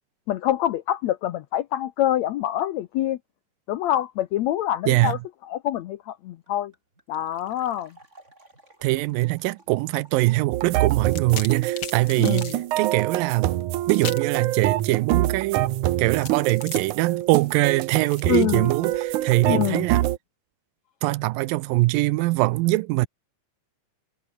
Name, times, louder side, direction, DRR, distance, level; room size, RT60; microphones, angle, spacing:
voice 1, 0.3-3.2 3.7-5.2 5.5-6.7 7.1-7.9 12.2-12.6 18.3-18.7 19.4-19.9, left 12 dB, 75° left, 1.7 m, -25 dB
voice 2, 4.9-5.2 8.8-13.6 13.9-15.7 16.0-20.0 21.0-23.1, right 20 dB, 85° right, 2.4 m, -23 dB
sound 1, 5.8-5.9 6.1-6.2 6.5-10.6, right 2 dB, 20° right, 6.6 m, -55 dB
sound 2, 10.5-20.2, right 14 dB, 70° right, 2.3 m, -26 dB
sound 3, 10.9-12.6 13.9-14.4 16.2-19.3, left 7 dB, 40° left, 2.5 m, -38 dB
omnidirectional pair, 4.0 m